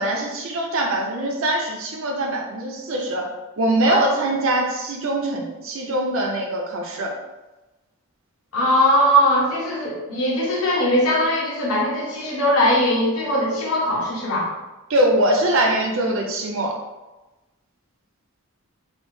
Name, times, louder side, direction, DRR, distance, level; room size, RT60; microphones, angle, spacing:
voice 1, 0.0-3.3 3.6-7.1 14.9-16.8, right 1 dB, 65° right, 1 dB, 0.5 m, -22 dB
voice 2, 8.5-14.5, equal, 80° left, -5 dB, 1.1 m, -20 dB
3.0 x 2.0 x 3.1 m, 1.1 s
head